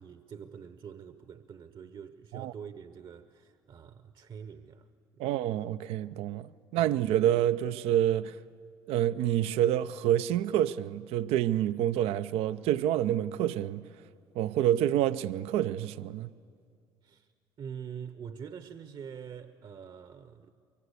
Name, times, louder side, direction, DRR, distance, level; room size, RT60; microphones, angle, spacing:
voice 1, 0.0-4.9 5.2-5.3 17.0-17.3 17.6-20.5, right 7 dB, 50° right, 1.0 m, -45 dB
voice 2, 5.2-8.4 8.9-13.8 14.4-16.3, right 11 dB, 70° right, 0.5 m, -28 dB
23.5 x 23.5 x 8.4 m
hypercardioid pair, 60°, 11 cm